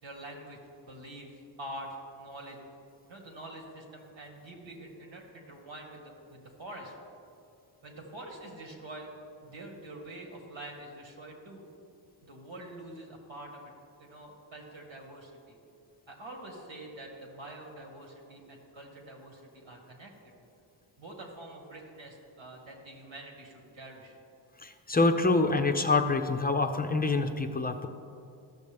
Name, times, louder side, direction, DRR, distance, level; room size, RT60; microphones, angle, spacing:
voice 1, 0.0-2.6 3.1-6.9 7.8-9.1 9.4-11.7 12.2-13.6 14.0-15.6 16.1-20.1 21.0-24.2, right 1 dB, 75° right, 0 dB, 2.0 m, -46 dB
voice 2, 24.6-27.9, left 3 dB, 20° left, 6 dB, 0.5 m, -26 dB
14.0 x 6.5 x 3.5 m, 2.5 s
cardioid pair, 75°, 46 cm